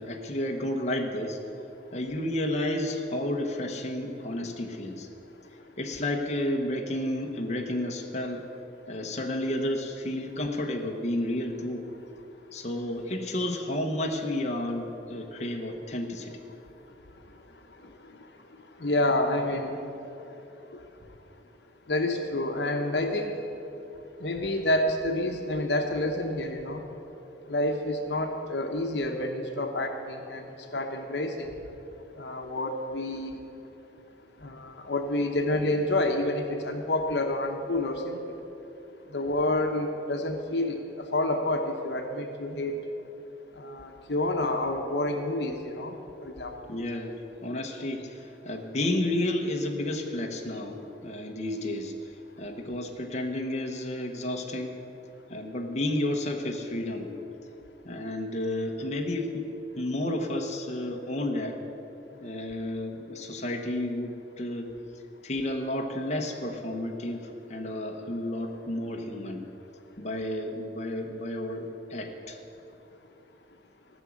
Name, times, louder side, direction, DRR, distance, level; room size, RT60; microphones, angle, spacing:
voice 1, 0.0-1.4 1.9-5.1 5.8-8.4 8.9-11.9 12.5-16.4 46.7-50.8 51.0-51.9 52.4-54.8 55.3-57.1 57.8-59.4 59.8-61.6 62.2-64.7 65.2-69.4 70.0-72.4, left 1 dB, 40° left, 1 dB, 1.1 m, -31 dB
voice 2, 18.8-19.8 21.9-23.4 24.2-26.8 27.5-31.5 32.2-33.3 34.4-38.4 39.1-40.8 41.1-42.8 43.6-46.0 46.2-46.5, left 1 dB, 70° left, 4 dB, 1.0 m, -28 dB
15.5 x 6.2 x 8.5 m, 3.0 s
head